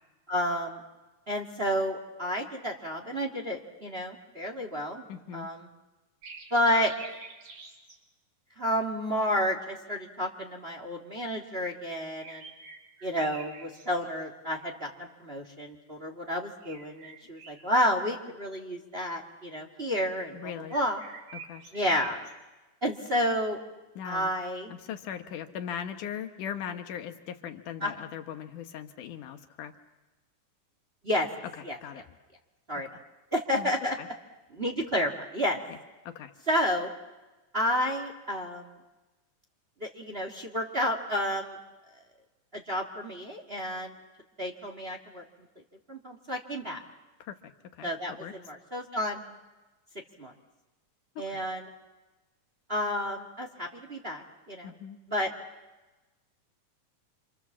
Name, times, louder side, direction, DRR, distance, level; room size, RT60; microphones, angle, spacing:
voice 1, 0.3-0.8 1.3-5.0 5.3-5.6 6.5-6.9 8.6-12.5 13.0-14.9 15.2-20.4 20.7-21.0 21.7-22.2 22.8-23.6 24.0-24.7 27.8-27.9 31.0-31.3 31.6-31.8 32.7-32.9 33.3-34.0 34.5-35.6 36.5-36.9 37.5-38.7 39.8-41.6 42.5-43.9 44.4-45.2 45.9-46.8 47.8-49.2 50.2-50.3 51.2-51.6 52.7-54.7 55.1-55.3, equal, 20° right, 4 dB, 1.8 m, -30 dB
voice 2, 5.1-5.5 20.3-20.8 21.3-21.6 24.0-24.3 24.7-29.7 31.6-32.0 33.6-33.7 34.0-34.1 35.7-35.8 36.1-36.3 47.2-47.4 47.7-48.3 51.2-51.5 54.6-55.0, left 9 dB, 80° left, 8 dB, 2.7 m, -39 dB
sound 1, 6.2-8.0 11.9-14.3 16.6-18.0 20.7-22.3, right 5 dB, 80° right, 4.7 m, -46 dB
27.5 x 27.0 x 7.3 m, 1.1 s
omnidirectional pair, 3.6 m